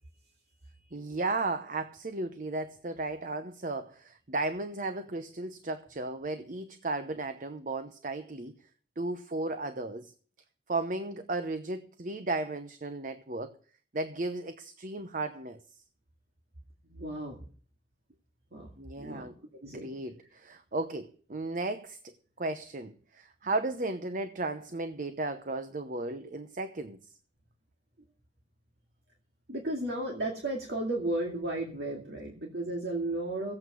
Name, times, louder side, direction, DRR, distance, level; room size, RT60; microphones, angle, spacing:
voice 1, 0.9-8.5 9.0-10.1 10.7-13.5 13.9-15.6 18.8-19.3 19.7-27.0, right 2 dB, 50° right, 0.8 m, -35 dB
voice 2, 16.9-17.4 18.5-18.7 19.0-19.3 19.6-19.9 29.5-33.5, right 1 dB, 65° right, 2.3 m, -34 dB
15.5 x 8.8 x 6.3 m
head